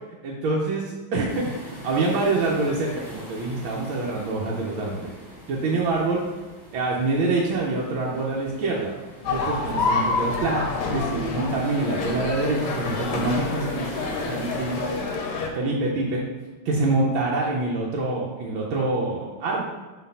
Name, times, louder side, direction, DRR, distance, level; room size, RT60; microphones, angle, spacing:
voice 1, 0.2-5.1 5.5-6.2 6.7-8.9 9.2-10.6 10.9-15.1 15.5-16.2 16.6-19.6, right 2 dB, 70° right, -3 dB, 1.5 m, -26 dB
sound 1, 1.3-15.2, equal, ahead, 1.3 m, -44 dB
sound 2, 9.2-15.5, left 3 dB, 65° left, 1.2 m, -28 dB
4.2 x 4.1 x 5.5 m, 1.2 s
omnidirectional pair, 2.4 m